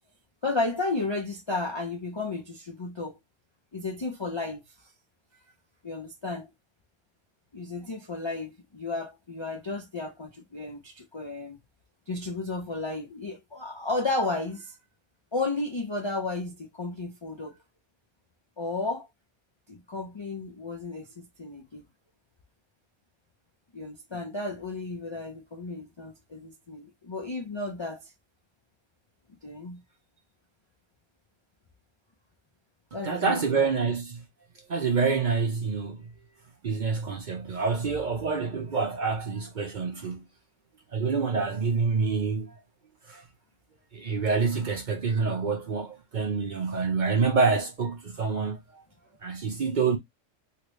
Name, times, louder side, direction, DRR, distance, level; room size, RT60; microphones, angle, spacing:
voice 1, 0.4-3.2 3.7-4.6 5.8-6.5 7.5-11.6 12.1-14.8 15.3-17.6 18.6-19.1 19.7-21.8 23.7-28.1 29.4-29.8 32.9-33.9, left 3 dB, 45° left, 0.4 m, -33 dB
voice 2, 32.9-34.2 34.7-36.1 36.6-40.2 40.9-42.5 43.1-43.2 43.9-48.8 49.2-50.0, right 5 dB, 50° right, 0.6 m, -27 dB
2.9 x 2.7 x 3.1 m
omnidirectional pair, 1.3 m